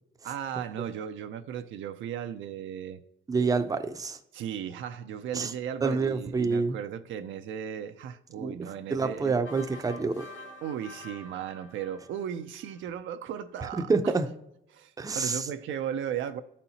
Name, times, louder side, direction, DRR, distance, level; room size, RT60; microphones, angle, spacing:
voice 1, 0.2-3.0 4.3-9.4 10.6-14.1 14.7-16.4, right 9 dB, 75° right, 0.4 m, -36 dB
voice 2, 3.3-4.2 5.3-5.5 5.8-6.8 8.4-10.3 13.7-14.3 15.0-15.5, right 4 dB, 20° right, 0.5 m, -28 dB
sound 1, 9.4-12.9, left 1 dB, 70° left, 1.0 m, -47 dB
11.5 x 4.2 x 2.8 m
cardioid pair, 90°, 20 cm